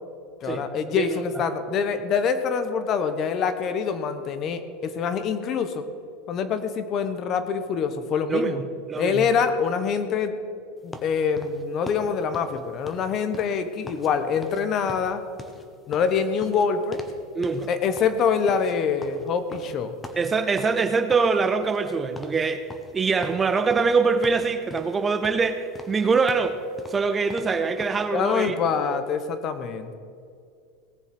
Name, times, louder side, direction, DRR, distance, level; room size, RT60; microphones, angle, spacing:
voice 1, 0.4-5.8 6.3-8.6 9.0-10.4 10.8-15.2 15.9-17.0 17.7-19.9 28.1-29.9, left 6 dB, 35° left, 10 dB, 1.1 m, -25 dB
voice 2, 1.0-1.4 8.3-9.3 17.3-17.7 20.2-22.7 22.9-26.6 26.9-28.6, right 4 dB, 15° right, 10 dB, 0.6 m, -24 dB
sound 1, 10.9-14.1 14.4-14.6 14.9-17.2 17.4-17.7 18.0-20.8 21.1-21.9 22.2-22.4 22.7-24.0 24.2-25.0 25.2-28.0, left 2 dB, 15° left, 1.1 m, -42 dB
18.0 x 7.3 x 5.9 m, 2.3 s
supercardioid pair, 150°, 0 cm